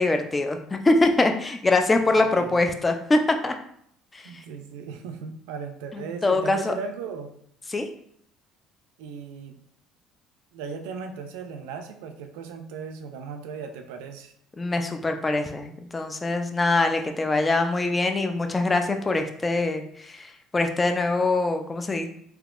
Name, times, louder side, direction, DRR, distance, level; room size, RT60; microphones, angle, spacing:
voice 1, 0.0-3.5 4.1-4.3 5.9-6.7 7.7-7.9 14.6-22.1, left 2 dB, 20° left, 6 dB, 0.4 m, -23 dB
voice 2, 2.1-2.5 4.2-7.3 9.0-9.5 10.5-14.3, right 5 dB, 90° right, 6 dB, 0.4 m, -37 dB
3.6 x 2.8 x 2.4 m, 0.68 s
supercardioid pair, 95°, 0 cm